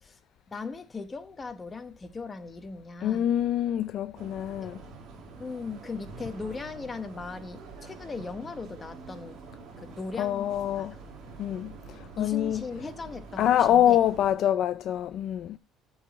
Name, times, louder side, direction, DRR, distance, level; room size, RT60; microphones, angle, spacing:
voice 1, 0.5-3.2 4.6-4.7 5.4-9.4 9.8-10.9 12.2-14.0, left 4 dB, 15° left, 1.0 m, -38 dB
voice 2, 3.0-4.8 10.2-10.9 11.4-11.7 12.2-12.6 13.4-15.6, left 11 dB, 50° left, 0.4 m, -25 dB
sound 1, 4.1-14.3, right 4 dB, 50° right, 2.0 m, -46 dB
13.5 x 4.9 x 3.9 m
cardioid pair, 165°, 0 cm